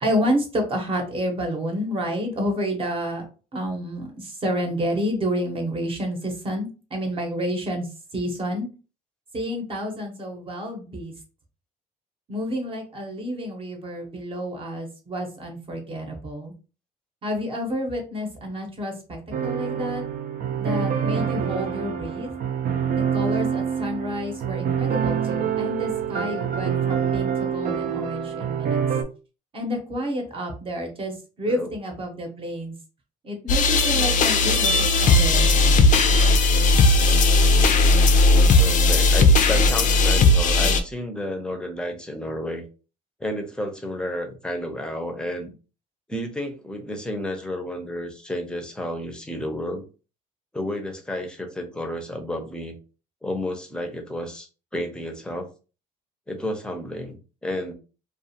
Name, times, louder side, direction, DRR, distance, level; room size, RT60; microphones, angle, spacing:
voice 1, 0.0-3.2 3.5-7.9 8.1-8.7 9.3-11.1 12.3-16.5 17.2-20.0 20.6-22.3 23.1-28.8 29.5-32.7 33.2-35.9, equal, 35° right, 3 dB, 0.9 m, -29 dB
sound 1, 19.3-29.0, right 7 dB, 60° right, 0.5 m, -26 dB
sound 2, 33.5-40.8, left 2 dB, 50° left, 0.5 m, -17 dB
voice 2, 38.6-42.6 43.2-45.5 46.1-49.8 50.5-52.7 53.2-55.5 56.3-57.7, left 1 dB, 5° left, 4 dB, 0.6 m, -31 dB
2.4 x 2.3 x 2.8 m, 0.34 s
cardioid pair, 110°, 17 cm